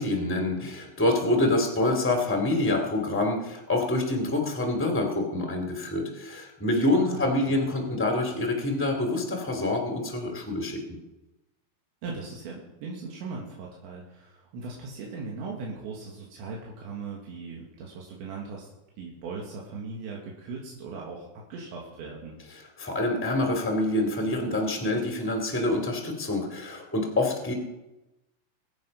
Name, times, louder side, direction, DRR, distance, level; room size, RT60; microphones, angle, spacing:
voice 1, 0.0-10.8 22.8-27.5, left 2 dB, 5° left, 2 dB, 0.9 m, -26 dB
voice 2, 7.0-7.6 12.0-18.7 19.0-22.4, right 4 dB, 85° right, -2 dB, 4.1 m, -39 dB
22.5 x 8.8 x 5.3 m, 0.99 s
omnidirectional pair, 5.1 m